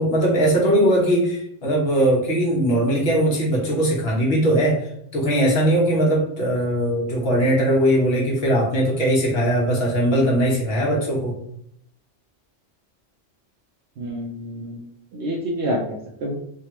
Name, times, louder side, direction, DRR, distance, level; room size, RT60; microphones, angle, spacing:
voice 1, 0.0-4.8 5.1-11.4, right 1 dB, 55° left, -3 dB, 1.2 m, -20 dB
voice 2, 14.0-14.9 15.1-16.4, equal, 65° right, -3 dB, 0.8 m, -28 dB
3.3 x 2.3 x 2.8 m, 0.70 s
omnidirectional pair, 1.3 m